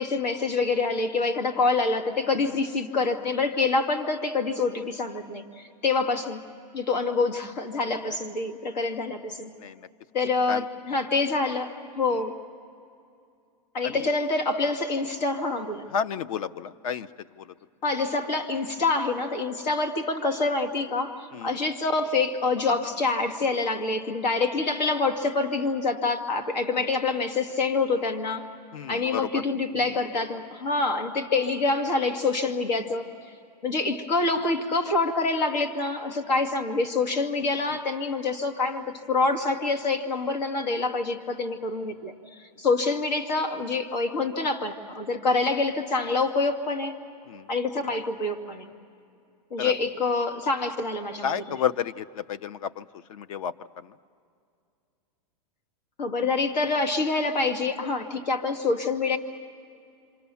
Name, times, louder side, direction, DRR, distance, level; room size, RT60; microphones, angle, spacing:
voice 1, 0.0-6.4 6.7-9.5 10.1-12.3 13.7-15.9 17.8-28.5 28.9-33.1 33.6-46.9 47.5-48.7 49.5-51.6 56.0-59.2, left 3 dB, 85° left, 5 dB, 2.4 m, -26 dB
voice 2, 15.9-17.1 17.4-17.5 21.3-21.5 28.7-29.4 47.3-47.5 49.6-49.7 51.2-53.9, left 8 dB, 55° left, 17 dB, 0.7 m, -31 dB
27.5 x 26.5 x 7.0 m, 2.4 s
supercardioid pair, 165°, 21 cm